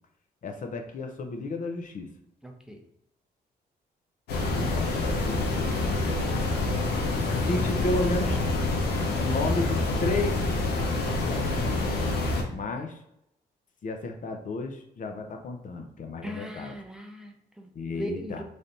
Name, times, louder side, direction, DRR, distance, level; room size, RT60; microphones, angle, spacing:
voice 1, 0.4-2.1 4.5-5.9 7.2-8.4 9.2-10.5 11.0-12.1 12.5-13.0 13.8-16.7 17.7-18.4, left 2 dB, 55° left, 4 dB, 0.6 m, -33 dB
voice 2, 2.4-2.8 16.2-18.4, equal, 5° right, 3 dB, 0.6 m, -39 dB
sound 1, 4.3-12.4, left 2 dB, 90° left, 0.8 m, -27 dB
3.3 x 2.6 x 4.0 m, 0.81 s
cardioid pair, 85°, 16 cm